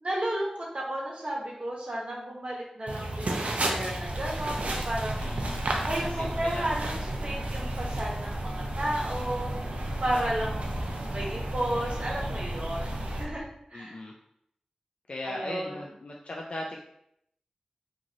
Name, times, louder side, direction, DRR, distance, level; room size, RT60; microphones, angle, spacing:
voice 1, 0.0-5.2 5.8-6.9 7.2-9.5 10.0-14.0 15.2-15.7, right 1 dB, 55° right, -3 dB, 0.9 m, -33 dB
sound 1, 2.9-13.3, right 2 dB, 90° right, 0.4 m, -33 dB
sound 2, 4.0-13.4, equal, 80° left, 0.7 m, -37 dB
voice 2, 5.2-5.6 6.0-6.7 10.1-10.4 13.7-14.1 15.1-16.8, left 1 dB, 55° left, -1 dB, 0.3 m, -38 dB
2.9 x 2.5 x 2.6 m, 0.74 s
wide cardioid pair, 75°, 2 cm